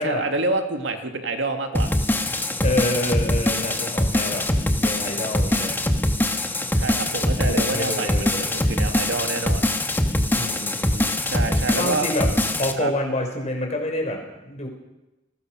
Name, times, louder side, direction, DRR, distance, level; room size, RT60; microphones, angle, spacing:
voice 1, 0.0-1.9 6.7-9.7 11.3-12.1 12.8-12.9, right 3 dB, 70° right, 5 dB, 2.4 m, -27 dB
sound 1, 1.7-12.7, left 1 dB, 10° left, 1.7 m, -23 dB
voice 2, 2.6-5.8 7.4-8.5 10.4-11.1 11.8-12.3 12.6-14.7, left 1 dB, 35° left, 2 dB, 5.7 m, -27 dB
29.5 x 19.5 x 6.4 m, 1.0 s
head